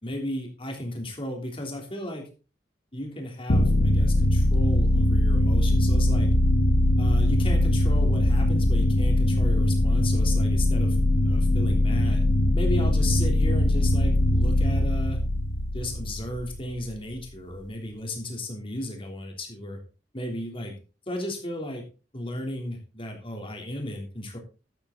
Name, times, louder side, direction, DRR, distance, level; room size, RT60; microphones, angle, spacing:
voice 1, 0.0-2.2 2.9-6.3 7.0-11.0 11.2-12.2 12.5-15.2 15.7-19.8 20.1-20.7 21.1-21.8 22.1-24.4, left 1 dB, 30° left, 2 dB, 3.3 m, -34 dB
sound 1, 3.5-16.9, left 1 dB, 80° left, 1.3 m, -21 dB
12.5 x 9.0 x 3.9 m, 0.33 s
head